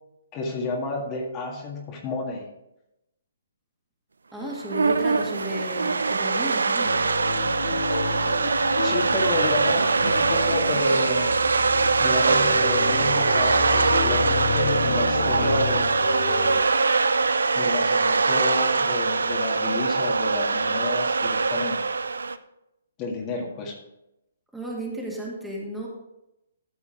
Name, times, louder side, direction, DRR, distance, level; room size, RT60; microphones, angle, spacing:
voice 1, 0.3-2.5 8.8-11.4 12.0-15.9 17.5-21.8 23.0-23.8, left 3 dB, 25° left, -1 dB, 1.9 m, -31 dB
voice 2, 4.3-7.0 24.5-25.9, right 1 dB, 5° right, -3 dB, 2.2 m, -34 dB
sound 1, 4.4-22.4, right 4 dB, 75° right, 0.5 m, -22 dB
sound 2, 6.8-16.6, left 5 dB, 70° left, 1.8 m, -31 dB
13.0 x 7.0 x 3.8 m, 0.88 s
figure-of-eight pair, 130°, 0 cm